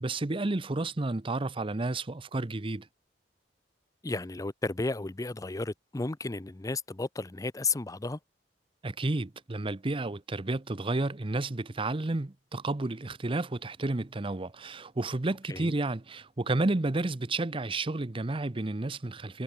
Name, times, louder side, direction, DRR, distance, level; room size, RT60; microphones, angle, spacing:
voice 1, 0.0-2.9 8.8-19.4, right 2 dB, 30° right, 0.7 m, -31 dB
voice 2, 4.0-8.2 15.5-15.7, left 3 dB, 20° left, 0.5 m, -33 dB
head